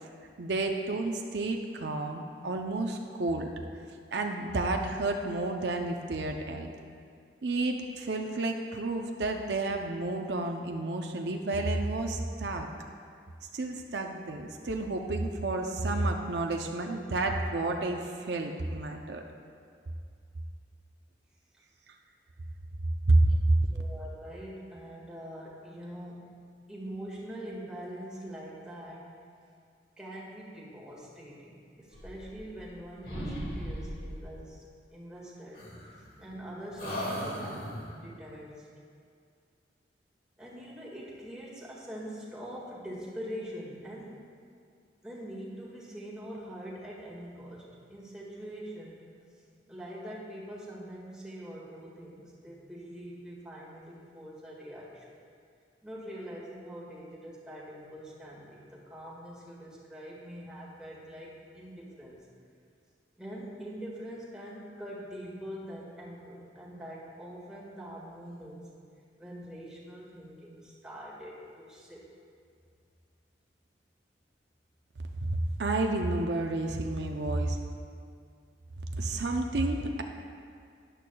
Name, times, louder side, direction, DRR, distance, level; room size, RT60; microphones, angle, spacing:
voice 1, 0.4-3.5 4.1-6.7 7.4-12.7 13.5-19.2 23.1-23.3 75.2-75.3 75.6-77.6 79.0-80.0, right 2 dB, 70° right, 3 dB, 0.6 m, -30 dB
voice 2, 23.7-26.4 26.7-29.1 30.0-35.6 36.2-38.7 40.4-44.2 45.0-49.1 49.7-55.1 55.8-62.3 63.2-68.7 69.2-72.1, equal, 5° right, -6 dB, 1.8 m, -44 dB
sound 1, 31.9-32.8 33.0-34.2 35.5-36.4 36.8-38.0, equal, 55° left, 1.9 m, -38 dB
12.5 x 10.0 x 2.3 m, 2.2 s
head